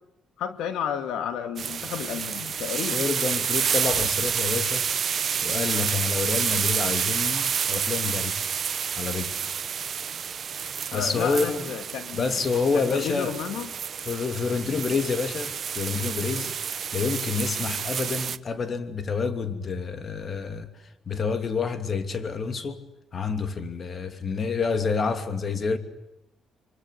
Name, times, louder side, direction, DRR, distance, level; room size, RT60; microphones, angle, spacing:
voice 1, 0.4-3.1 10.9-12.4 12.7-13.7 16.3-16.5, left 8 dB, 85° left, 2.5 m, -32 dB
sound 1, 1.6-18.4, right 7 dB, 55° right, 1.0 m, -29 dB
voice 2, 2.9-4.9 5.4-8.5 9.0-9.4 10.9-11.7 12.1-13.3 14.0-16.5 16.9-20.7 21.1-22.8 23.1-25.8, left 5 dB, 45° left, 2.9 m, -28 dB
27.0 x 24.0 x 8.3 m
cardioid pair, 90°, 0 cm